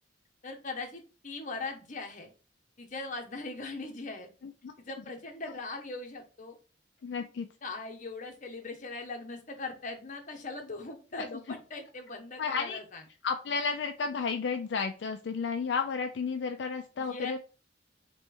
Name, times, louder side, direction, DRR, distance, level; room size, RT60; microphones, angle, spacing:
voice 1, 0.4-2.3 2.8-4.3 4.8-6.6 7.6-13.0 17.0-17.3, left 3 dB, 45° left, 4 dB, 0.9 m, -40 dB
voice 2, 4.4-4.7 7.0-7.5 11.2-11.4 12.1-12.8 13.2-17.4, left 5 dB, 70° left, 6 dB, 0.4 m, -32 dB
3.3 x 3.0 x 4.5 m, 0.35 s
head